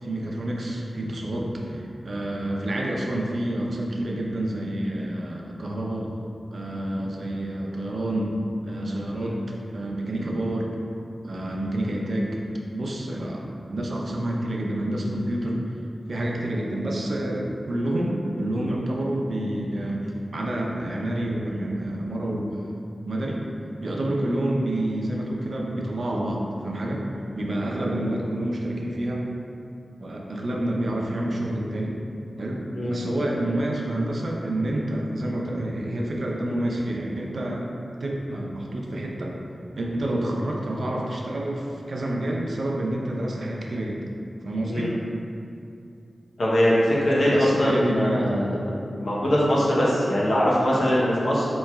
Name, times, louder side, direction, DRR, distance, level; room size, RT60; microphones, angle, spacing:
voice 1, 0.0-6.1 6.5-8.4 8.6-10.8 11.2-12.4 12.7-15.6 16.1-22.6 23.0-23.4 23.8-27.0 27.3-29.3 30.0-32.0 32.4-37.7 38.0-39.4 39.8-44.0 44.4-44.9 47.2-48.8 49.1-49.3, right 1 dB, 60° right, -1 dB, 0.5 m, -28 dB
voice 2, 46.4-48.7 49.0-51.5, equal, 70° left, -7 dB, 0.8 m, -22 dB
4.5 x 3.0 x 2.3 m, 2.5 s
wide cardioid pair, 100°, 0 cm